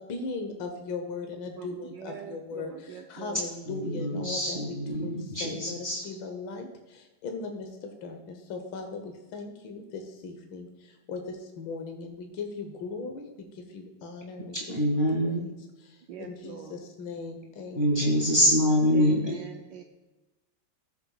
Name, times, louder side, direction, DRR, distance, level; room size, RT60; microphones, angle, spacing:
voice 1, 0.0-5.8 6.0-14.6 15.1-15.5 15.9-18.3, left 4 dB, 75° left, 4 dB, 1.8 m, -39 dB
voice 2, 1.5-3.5 16.1-16.8 18.9-19.8, right 8 dB, 70° right, 3 dB, 1.3 m, -43 dB
voice 3, 3.6-6.1 14.5-15.5 17.7-19.5, equal, 25° right, -5 dB, 2.3 m, -25 dB
18.0 x 7.0 x 2.3 m, 1.1 s
omnidirectional pair, 2.2 m